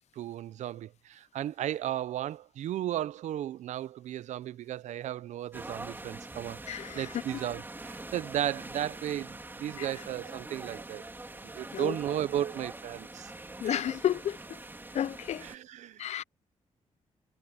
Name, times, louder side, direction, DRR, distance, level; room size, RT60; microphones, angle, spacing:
voice 1, 0.2-11.0 11.4-13.3 13.6-13.8 15.4-16.1, right 11 dB, 90° right, 0.6 m, -35 dB
sound 1, 5.5-15.6, right 2 dB, 20° right, 3.6 m, -44 dB
voice 2, 6.7-7.1 9.8-9.9 11.7-11.9 13.6-14.4 14.9-15.5 16.0-16.2, left 10 dB, 70° left, 0.6 m, -31 dB
cardioid pair, 100°, 12 cm